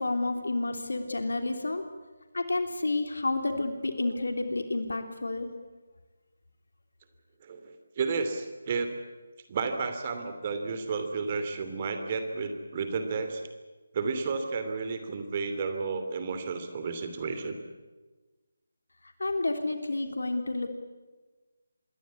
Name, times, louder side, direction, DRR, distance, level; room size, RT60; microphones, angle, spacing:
voice 1, 0.0-1.8 2.3-5.5 19.0-20.7, left 2 dB, 70° left, 6 dB, 3.2 m, -30 dB
voice 2, 7.4-8.9 9.5-13.4 13.9-17.6, right 4 dB, 35° right, 7 dB, 2.9 m, -32 dB
26.5 x 21.5 x 8.5 m, 1.3 s
figure-of-eight pair, 155°, 0 cm